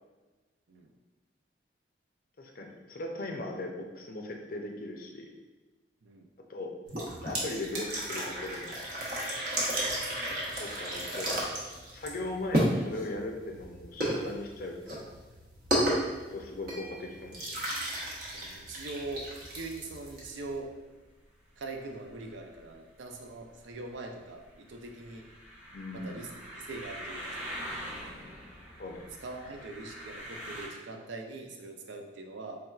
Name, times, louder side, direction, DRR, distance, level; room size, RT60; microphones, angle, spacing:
voice 1, 2.4-5.3 6.5-6.7 7.2-8.8 10.6-11.6 11.9-15.1 16.3-17.6 25.7-26.1 28.8-29.1, left 2 dB, 50° left, 2 dB, 0.5 m, -39 dB
sound 1, 6.8-20.6, right 1 dB, 55° right, 0.9 m, -33 dB
sound 2, 18.3-30.7, equal, 10° right, 0.8 m, -45 dB
voice 2, 18.3-20.7 21.6-25.2 25.9-27.6 29.2-32.6, right 2 dB, 80° right, 3 dB, 0.5 m, -42 dB
4.3 x 3.3 x 2.3 m, 1.2 s
head